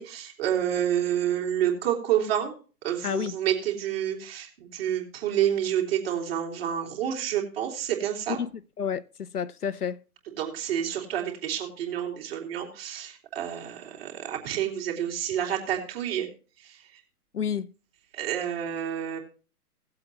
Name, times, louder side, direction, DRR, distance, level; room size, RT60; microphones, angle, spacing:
voice 1, 0.0-2.5 2.8-8.4 10.4-16.3 16.6-16.8 18.1-19.2, right 10 dB, 40° right, 3.0 m, -29 dB
voice 2, 9.3-10.0 17.3-17.7, left 7 dB, 75° left, 0.7 m, -29 dB
17.5 x 7.8 x 3.0 m
figure-of-eight pair, 130°, 47 cm